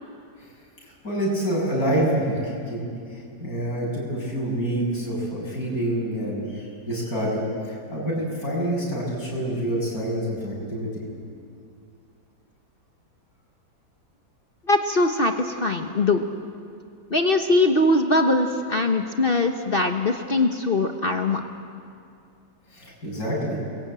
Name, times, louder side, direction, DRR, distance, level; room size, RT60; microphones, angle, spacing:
voice 1, 0.8-11.0 22.7-23.6, right 1 dB, 60° left, -3 dB, 8.1 m, -27 dB
voice 2, 14.7-16.2 17.1-21.4, left 2 dB, 40° left, 5 dB, 1.2 m, -21 dB
29.5 x 22.0 x 8.9 m, 2.5 s
omnidirectional pair, 1.8 m